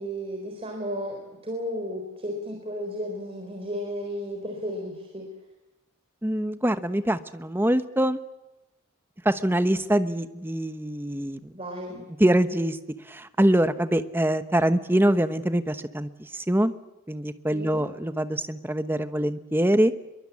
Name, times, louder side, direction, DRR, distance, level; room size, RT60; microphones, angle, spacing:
voice 1, 0.0-5.2 11.5-12.0 17.5-17.8, equal, 30° right, 2 dB, 4.1 m, -33 dB
voice 2, 6.2-8.2 9.2-11.5 12.2-12.8 13.1-16.7 17.1-19.9, right 1 dB, 10° right, 11 dB, 1.0 m, -24 dB
24.5 x 23.0 x 8.5 m, 1.0 s
head